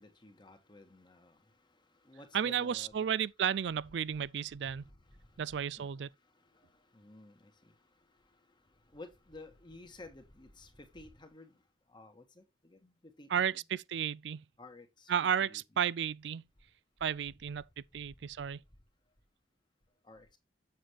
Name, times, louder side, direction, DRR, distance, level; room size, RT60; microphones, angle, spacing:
voice 1, 0.0-1.4 2.0-3.1 4.7-4.9 5.7-5.9 6.5-7.7 8.9-11.6 11.9-13.6 14.6-15.1 15.4-15.6 20.0-20.4, left 2 dB, 25° left, 1.6 m, -53 dB
voice 2, 2.3-4.8 5.4-6.1 13.3-14.4 15.1-16.4 17.0-17.6 17.9-18.6, right 8 dB, 70° right, 0.4 m, -33 dB
7.5 x 7.2 x 3.2 m
head